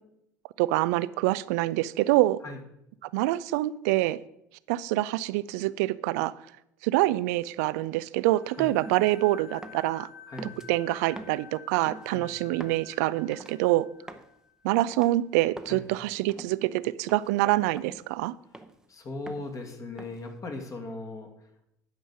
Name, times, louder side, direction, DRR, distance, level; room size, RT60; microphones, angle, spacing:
voice 1, 0.6-2.4 3.1-4.2 4.7-6.3 6.8-10.1 10.7-13.9 14.6-18.3, right 17 dB, 65° right, 18 dB, 0.4 m, -26 dB
sound 1, 8.2-14.7, left 7 dB, 65° left, 3.9 m, -51 dB
sound 2, 8.8-9.2 9.6-9.9 10.4-10.7 11.2-11.5 11.9-12.1 12.6-12.8 13.3-13.6 14.1-14.3 14.8-15.1 15.6-15.8 16.3-16.6 17.1-17.3 17.8-18.0 18.5-18.9 19.3-19.5 20.0-20.3, right 1 dB, 5° right, 0.9 m, -44 dB
voice 2, 18.9-21.6, left 2 dB, 35° left, 3 dB, 2.3 m, -38 dB
10.5 x 5.4 x 6.2 m, 0.80 s
figure-of-eight pair, 65°, 9 cm